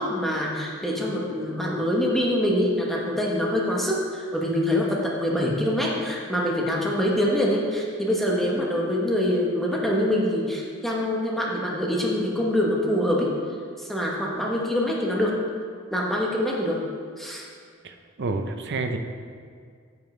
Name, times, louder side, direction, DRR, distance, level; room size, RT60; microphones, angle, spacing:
voice 1, 0.0-13.3 13.8-15.3 15.9-16.8 17.2-17.4, left 1 dB, ahead, -3 dB, 1.0 m, -25 dB
voice 2, 17.8-19.0, right 3 dB, 55° right, 6 dB, 0.6 m, -29 dB
9.6 x 7.2 x 3.2 m, 2.1 s
head